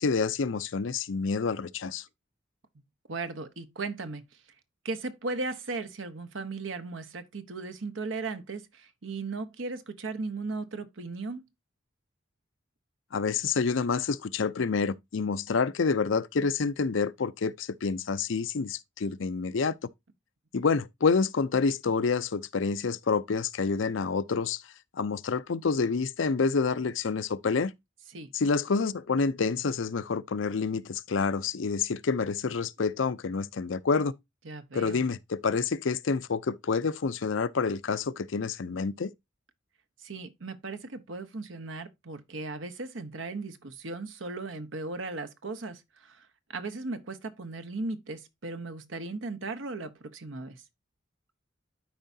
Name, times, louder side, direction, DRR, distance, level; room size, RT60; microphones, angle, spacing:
voice 1, 0.0-2.1 13.1-19.8 20.5-27.7 28.3-34.1 34.7-39.1, left 4 dB, 80° left, 0.6 m, -28 dB
voice 2, 3.1-4.2 4.8-11.4 28.1-28.3 34.4-35.0 40.0-50.6, right 3 dB, 80° right, 1.0 m, -37 dB
12.5 x 4.7 x 2.7 m
head